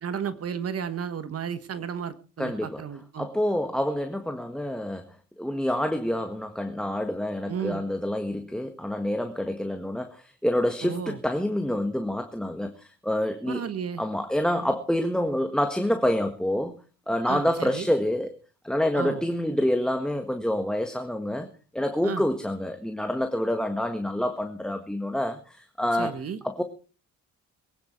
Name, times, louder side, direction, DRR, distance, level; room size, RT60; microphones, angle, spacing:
voice 1, 0.0-3.3 7.5-7.8 10.8-11.2 13.5-14.0 17.3-17.9 18.9-19.2 22.0-22.3 26.0-26.4, right 7 dB, 50° right, 13 dB, 1.4 m, -33 dB
voice 2, 2.4-2.8 3.2-13.6 14.0-16.7 17.1-18.3 18.6-21.5 21.7-26.2 26.4-26.6, left 1 dB, ahead, 6 dB, 1.7 m, -27 dB
22.5 x 9.7 x 4.5 m, 0.36 s
cardioid pair, 90°, 30 cm